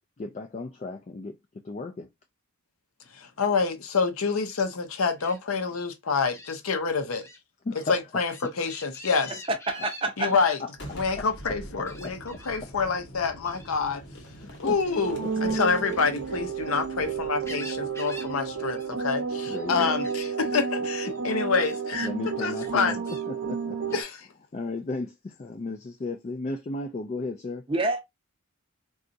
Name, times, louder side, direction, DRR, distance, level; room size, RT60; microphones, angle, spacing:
voice 1, 0.2-2.1 7.6-7.9 10.3-10.7 11.2-11.3 12.0-12.1 14.6-14.8 19.5-20.0 22.0-23.0 23.3-24.0 24.5-27.6, left 3 dB, 30° left, 0.3 m, -34 dB
voice 2, 3.1-7.2 7.9-9.4 10.2-10.6 10.9-14.0 14.6-22.1 22.4-23.0 23.9-24.3, left 5 dB, 75° left, 0.6 m, -27 dB
Gull seagull, 5.2-5.4 6.3-6.5 7.1-7.4 7.7-10.6 11.8-12.5 13.4-13.7 15.6-16.8 17.2-18.3 18.6-18.9 19.2-19.7 20.0-20.3 21.0-21.2 21.6-21.8 22.5-23.2 23.9-24.1, left 1 dB, 10° left, 0.7 m, -46 dB
voice 3, 9.7-10.3 27.7-28.0, right 2 dB, 25° right, 0.5 m, -27 dB
Boom, 10.7-20.3, equal, 50° left, 1.0 m, -46 dB
sound 1, 15.0-24.0, right 5 dB, 75° right, 0.7 m, -31 dB
3.9 x 2.3 x 2.5 m
head